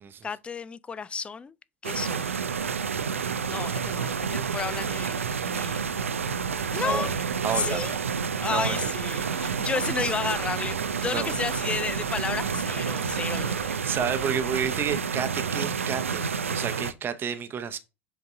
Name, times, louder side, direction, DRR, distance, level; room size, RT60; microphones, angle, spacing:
voice 1, 0.2-1.5 1.8-2.4 3.4-5.9 6.7-7.1 7.5-8.0 8.4-13.8, left 5 dB, 15° left, 0.3 m, -32 dB
sound 1, 1.8-16.9, right 6 dB, 80° right, 0.4 m, -29 dB
sound 2, 3.8-15.0, left 4 dB, 85° left, 0.6 m, -47 dB
voice 2, 7.4-8.0 8.5-8.8 11.0-11.3 13.8-17.8, right 7 dB, 30° right, 0.8 m, -31 dB
7.9 x 3.9 x 3.6 m
figure-of-eight pair, 75°, 7 cm